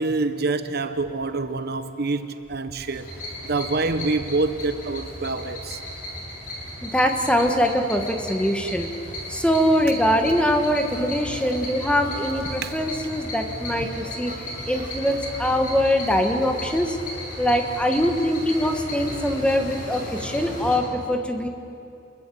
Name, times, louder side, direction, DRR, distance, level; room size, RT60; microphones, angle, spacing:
voice 1, 0.0-3.1 3.4-5.8 12.6-12.7, right 3 dB, 55° right, 10 dB, 1.0 m, -26 dB
sound 1, 2.9-20.8, left 1 dB, 45° left, 6.9 m, -35 dB
voice 2, 6.8-8.9 9.3-14.3 14.7-17.0 17.4-21.5, equal, 5° left, 5 dB, 1.6 m, -23 dB
28.5 x 22.0 x 8.6 m, 2.7 s
head